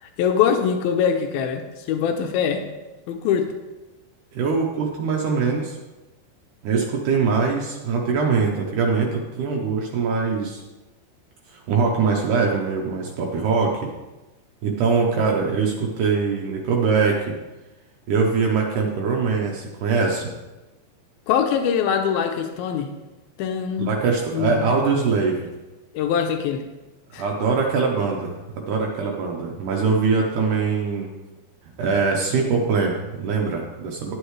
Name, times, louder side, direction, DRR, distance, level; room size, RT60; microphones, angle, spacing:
voice 1, 0.0-2.7 3.1-3.5 21.3-22.9 23.4-23.9 24.3-24.8 25.9-26.6 27.1-27.3, left 7 dB, 80° left, 5 dB, 2.2 m, -23 dB
voice 2, 4.3-5.8 6.6-10.6 11.5-13.9 14.6-17.4 18.1-20.3 23.8-25.5 27.1-31.1 31.8-34.1, right 5 dB, 85° right, 0 dB, 1.8 m, -22 dB
11.0 x 9.8 x 3.2 m, 1.1 s
omnidirectional pair, 5.1 m